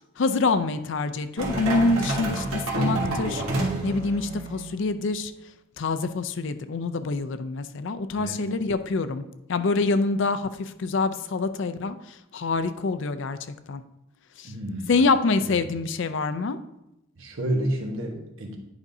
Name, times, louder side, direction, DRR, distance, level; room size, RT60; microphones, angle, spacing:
voice 1, 0.2-5.3 5.8-9.2 9.5-13.4 13.7-13.8 14.4-14.5 14.9-16.6, left 3 dB, 55° left, 11 dB, 0.4 m, -26 dB
sound 1, 1.4-4.7, right 2 dB, 85° right, 1.6 m, -28 dB
voice 2, 8.1-8.4 14.4-14.9 15.5-15.6 17.2-18.6, right 1 dB, 65° right, 2 dB, 1.1 m, -30 dB
9.8 x 5.2 x 2.7 m, 0.87 s
head